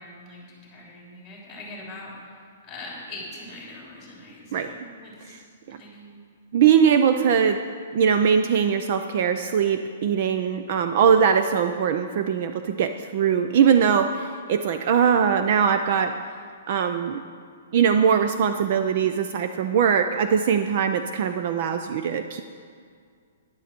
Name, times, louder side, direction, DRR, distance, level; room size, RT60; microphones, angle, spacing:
voice 1, 0.0-2.4 2.6-5.4 5.8-6.1, left 2 dB, 10° left, -3 dB, 3.4 m, -42 dB
voice 2, 6.5-7.6 7.9-16.1 16.7-17.2 17.7-22.4, right 7 dB, 40° right, 8 dB, 0.5 m, -21 dB
13.5 x 10.5 x 4.4 m, 2.1 s
hypercardioid pair, 170°, 0 cm